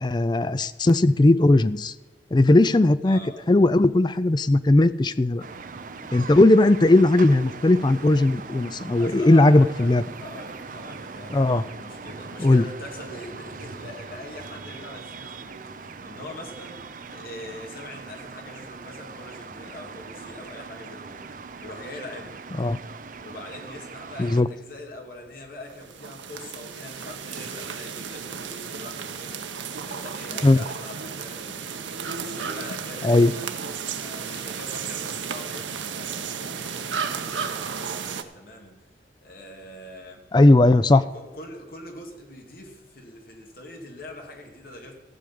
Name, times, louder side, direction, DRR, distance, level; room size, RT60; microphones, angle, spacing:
voice 1, 0.0-1.9 2.3-3.2 3.5-5.4 6.1-10.0 11.3-11.6 12.4-12.6 22.6-22.8 24.2-24.5 30.4-30.6 33.0-33.3 40.3-41.0, left 2 dB, 25° left, 14 dB, 0.4 m, -18 dB
voice 2, 3.0-3.5 6.1-6.3 9.0-22.4 23.2-31.8 32.2-33.5 33.9-38.9 39.2-40.3 41.0-45.0, left 1 dB, 50° left, 2 dB, 2.4 m, -43 dB
sound 1, 5.4-24.4, right 4 dB, 45° right, 0.6 m, -40 dB
sound 2, 25.7-38.2, right 6 dB, 85° right, 1.0 m, -33 dB
15.0 x 5.1 x 8.5 m, 1.2 s
head